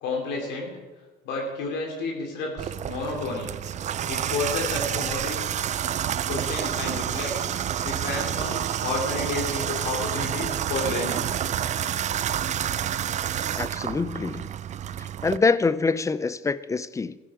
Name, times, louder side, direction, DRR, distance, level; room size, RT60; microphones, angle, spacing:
voice 1, 0.0-0.8 1.2-3.5 4.1-5.5 6.3-7.4 7.8-11.3, left 3 dB, 90° left, 2.8 m, -31 dB
Water tap faucet / Bathtub (filling or washing), 2.6-15.4, right 10 dB, 45° right, 0.5 m, -29 dB
voice 2, 13.5-14.5 15.2-17.2, left 4 dB, 20° left, 0.4 m, -25 dB
14.5 x 10.5 x 4.9 m
cardioid pair, 110°, 17 cm